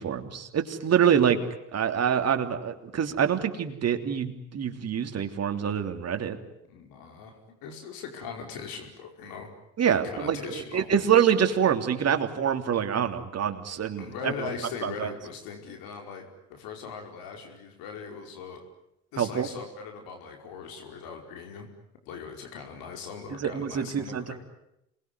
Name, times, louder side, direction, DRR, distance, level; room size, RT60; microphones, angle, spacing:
voice 1, 0.0-1.4 1.7-6.4 9.8-14.3 14.8-15.1 19.2-19.5 23.3-24.3, right 8 dB, 40° right, 6 dB, 3.2 m, -26 dB
voice 2, 6.7-9.5 10.0-11.1 14.0-18.6 19.1-21.7 22.0-24.4, left 5 dB, 60° left, 3 dB, 5.1 m, -40 dB
27.0 x 21.5 x 9.6 m, 0.83 s
hypercardioid pair, 70°, 39 cm